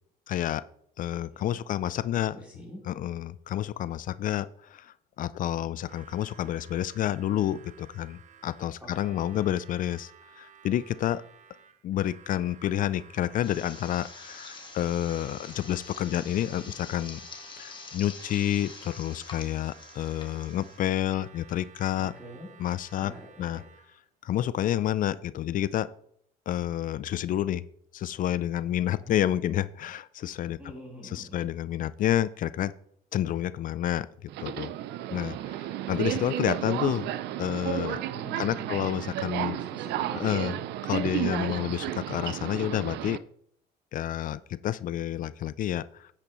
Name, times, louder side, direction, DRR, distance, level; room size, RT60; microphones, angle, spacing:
voice 1, 0.3-0.7 1.0-2.4 2.9-10.1 10.4-11.2 11.8-17.2 17.6-22.1 22.6-23.1 23.4-23.6 24.2-25.9 26.5-27.6 27.9-30.6 31.1-32.7 33.1-34.7 35.1-37.1 37.4-38.0 38.4-39.6 40.2-40.5 40.8-43.2 43.9-46.1, left 12 dB, 55° left, 17 dB, 0.4 m, -29 dB
voice 2, 1.3-1.6 2.1-2.8 8.8-9.5 16.4-16.7 22.0-22.5 23.0-23.6 29.0-29.3 30.6-31.4 36.3-36.8 38.1-38.9 39.3-40.3, equal, 10° right, -4 dB, 3.9 m, -46 dB
Harmonica, 5.8-24.1, right 8 dB, 45° right, 0.9 m, -54 dB
sound 1, 13.4-20.8, left 4 dB, 30° left, 1.6 m, -46 dB
Subway metro underground, 34.3-43.2, right 13 dB, 80° right, 0.5 m, -32 dB
9.8 x 8.8 x 3.1 m, 0.67 s
cardioid pair, 110°, 17 cm